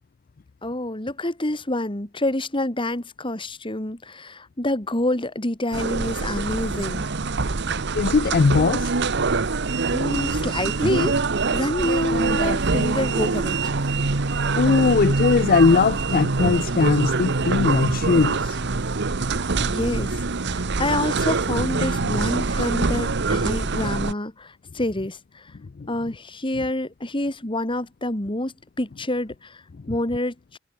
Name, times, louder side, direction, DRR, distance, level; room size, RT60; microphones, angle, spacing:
voice 1, 0.6-7.0 9.9-11.1 11.5-13.7 19.6-20.2 20.5-25.5 25.9-29.6 29.9-30.6, left 1 dB, 25° left, 2.4 m, -27 dB
sound 1, 5.7-24.1, right 3 dB, 60° right, 1.1 m, -24 dB
voice 2, 7.9-8.9 14.6-18.6 25.8-25.9, left 4 dB, 45° left, 0.4 m, -20 dB
sound 2, 8.8-20.8, right 1 dB, 25° right, 4.6 m, -51 dB
head